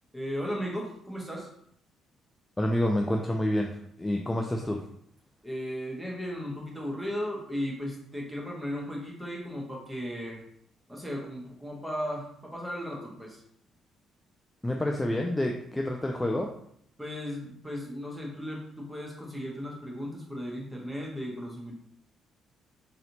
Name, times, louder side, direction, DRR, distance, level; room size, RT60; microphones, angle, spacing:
voice 1, 0.1-1.5 5.4-10.4 10.9-13.4 17.0-21.8, equal, 5° right, -2 dB, 1.2 m, -36 dB
voice 2, 2.6-3.7 4.0-4.8 14.6-16.5, left 1 dB, 15° left, 2 dB, 0.4 m, -28 dB
3.9 x 2.9 x 2.7 m, 0.68 s
figure-of-eight pair, 45°, 0 cm